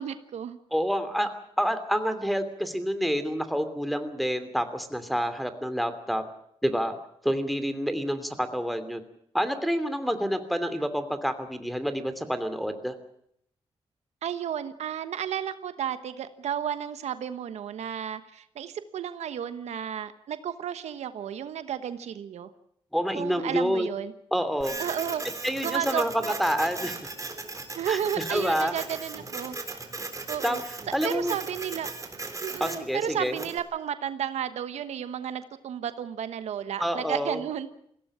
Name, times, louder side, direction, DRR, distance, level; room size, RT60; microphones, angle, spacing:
voice 1, 0.0-0.6 14.2-22.5 23.1-24.1 24.8-25.2 25.6-26.3 27.7-29.6 30.3-30.6 31.0-31.9 32.4-37.7, right 9 dB, 90° right, 11 dB, 1.2 m, -32 dB
voice 2, 0.7-6.2 6.6-7.0 7.2-9.0 9.3-12.9 22.9-23.9 24.3-24.8 25.4-26.9 27.9-28.7 30.4-30.6 30.9-31.4 32.6-33.4 36.8-37.4, equal, ahead, 8 dB, 2.9 m, -28 dB
Printer, 24.6-33.6, right 3 dB, 30° right, 3.7 m, -37 dB
21.5 x 16.5 x 8.7 m, 0.70 s
cardioid pair, 80°, 11 cm